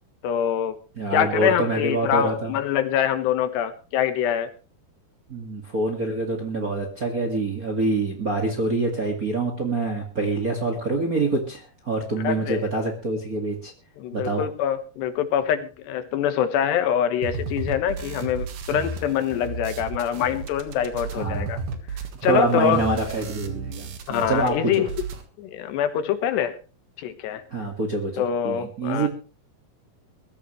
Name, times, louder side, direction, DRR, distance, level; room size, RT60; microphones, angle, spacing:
voice 1, 0.2-0.8 1.1-4.5 12.2-12.7 14.0-21.6 22.2-22.8 24.1-24.9 25.4-26.6 27.0-27.4 28.2-29.1, left 9 dB, 85° left, 10 dB, 3.5 m, -24 dB
voice 2, 1.0-2.5 5.3-13.7 14.1-14.4 21.2-21.5 22.3-24.5 27.5-29.1, right 2 dB, 35° right, 2 dB, 1.5 m, -26 dB
sound 1, 17.2-24.5 24.8-25.2, right 4 dB, 60° right, 3.0 m, -33 dB
21.5 x 14.0 x 3.2 m, 0.34 s
omnidirectional pair, 4.7 m